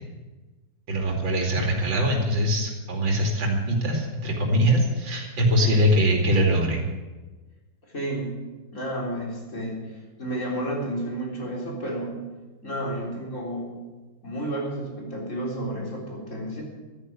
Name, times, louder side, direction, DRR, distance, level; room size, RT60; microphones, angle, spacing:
voice 1, 0.9-6.8, equal, 85° right, 1 dB, 3.2 m, -22 dB
voice 2, 7.8-8.4 8.7-12.2 12.6-13.8 14.2-16.6, right 1 dB, 40° left, -2 dB, 4.1 m, -31 dB
13.5 x 9.8 x 8.7 m, 1.2 s
omnidirectional pair, 2.0 m